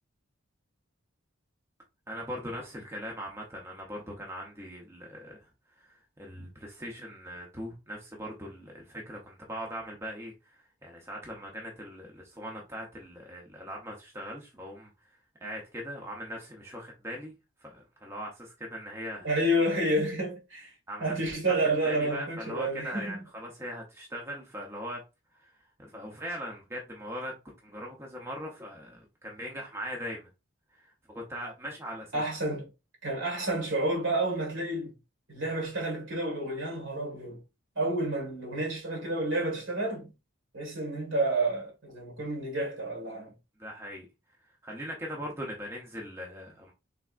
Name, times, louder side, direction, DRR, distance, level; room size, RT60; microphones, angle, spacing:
voice 1, 2.1-5.5 5.8-14.9 15.4-17.3 17.6-19.3 20.9-21.1 21.5-21.6 21.8-25.0 25.3-25.5 25.8-27.3 27.6-30.3 30.7-32.2 43.6-44.1 44.6-46.7, equal, 15° right, 0.6 m, -40 dB
voice 2, 19.2-20.7 21.0-23.2 32.1-32.7 33.0-34.9 35.3-37.4 37.7-40.1 40.5-43.3, right 1 dB, 60° right, 1.7 m, -30 dB
3.4 x 3.3 x 2.4 m
head